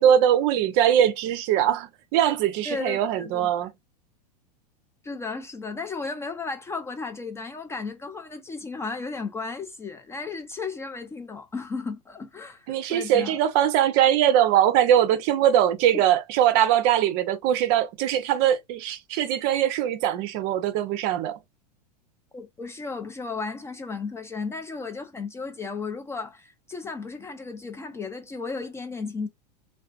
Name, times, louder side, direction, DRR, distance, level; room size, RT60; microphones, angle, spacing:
voice 1, 0.0-3.7 12.7-21.4, right 10 dB, 45° right, 0.5 m, -21 dB
voice 2, 2.7-3.7 5.0-13.4 15.9-16.0 22.3-29.3, left 4 dB, 10° left, 0.3 m, -34 dB
2.4 x 2.2 x 2.3 m
hypercardioid pair, 95°, 21 cm